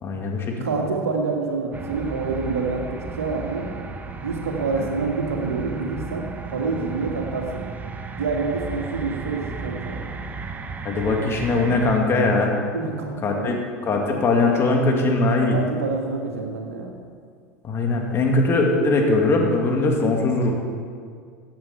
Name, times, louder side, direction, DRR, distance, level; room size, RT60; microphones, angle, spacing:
voice 1, 0.0-0.7 4.8-4.9 10.8-12.5 13.2-13.6 13.8-15.6 17.6-20.5, left 2 dB, 35° left, 1 dB, 2.4 m, -21 dB
voice 2, 0.6-3.7 4.2-7.6 8.2-10.0 12.7-13.5 15.5-17.0, right 4 dB, 80° right, 1 dB, 1.9 m, -27 dB
sound 1, 1.7-12.0, right 4 dB, 20° right, 1.0 m, -34 dB
14.5 x 8.8 x 4.4 m, 2.1 s
hypercardioid pair, 80°, 7 cm